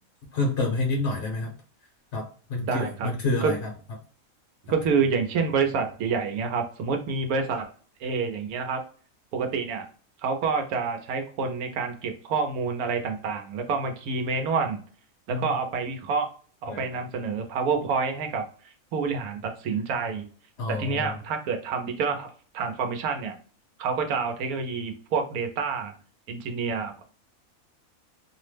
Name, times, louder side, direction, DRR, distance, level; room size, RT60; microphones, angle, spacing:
voice 1, 0.3-1.5 2.1-3.6 15.3-15.4 16.7-16.8 20.6-21.1, left 2 dB, 60° left, 1 dB, 0.9 m, -28 dB
voice 2, 2.6-3.1 3.4-3.5 4.6-7.7 8.0-8.8 9.3-9.9 10.2-14.8 15.3-16.3 16.6-20.3 20.7-23.4 23.8-25.9 26.3-27.0, right 5 dB, 90° right, 5 dB, 1.1 m, -28 dB
2.8 x 2.0 x 3.1 m, 0.41 s
omnidirectional pair, 1.5 m